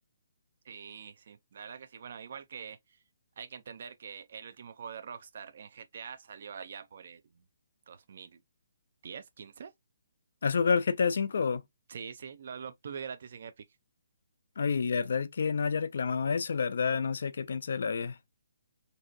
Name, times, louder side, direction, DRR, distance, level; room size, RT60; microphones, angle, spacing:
voice 1, 0.6-3.0 3.4-7.4 7.9-8.4 9.0-9.7 11.9-13.7, right 6 dB, 55° right, 0.4 m, -44 dB
voice 2, 10.4-11.6 14.6-18.2, left 5 dB, 65° left, 0.4 m, -29 dB
2.7 x 2.0 x 2.5 m
figure-of-eight pair, 140°, 0 cm